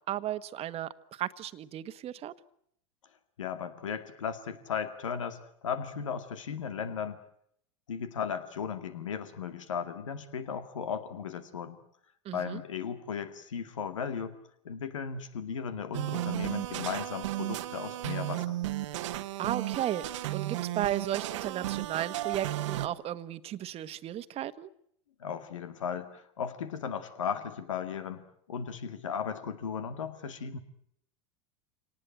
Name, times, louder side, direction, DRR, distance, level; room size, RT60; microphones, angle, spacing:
voice 1, 0.1-2.3 12.2-12.6 19.4-20.0 20.3-24.7, right 12 dB, 40° right, 1.3 m, -34 dB
voice 2, 3.4-7.2 7.9-11.8 12.3-14.4 14.6-18.6 25.2-30.6, left 7 dB, 90° left, 2.2 m, -36 dB
sound 1, 15.9-22.9, right 15 dB, 75° right, 1.2 m, -34 dB
26.5 x 19.0 x 9.2 m
hypercardioid pair, 100°, 16 cm